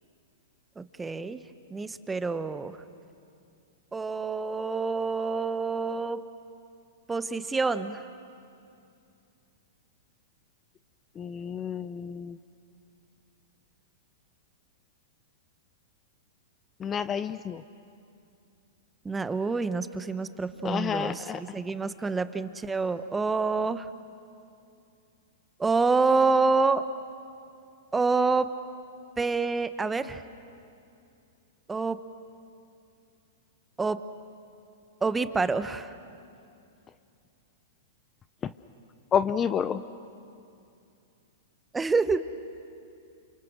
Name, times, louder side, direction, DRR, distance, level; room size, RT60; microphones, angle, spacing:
voice 1, 0.8-1.4 1.7-2.8 3.9-6.2 7.1-8.0 19.0-23.8 25.6-26.8 27.9-28.5 29.2-30.2 31.7-32.0 33.8-34.0 35.0-35.9 41.7-42.2, right 4 dB, 10° right, 12 dB, 1.0 m, -27 dB
voice 2, 11.2-12.4 16.8-17.6 20.6-21.4 39.1-39.8, left 7 dB, 25° left, 13 dB, 0.6 m, -29 dB
29.5 x 26.5 x 6.3 m, 2.5 s
hypercardioid pair, 120°, 0 cm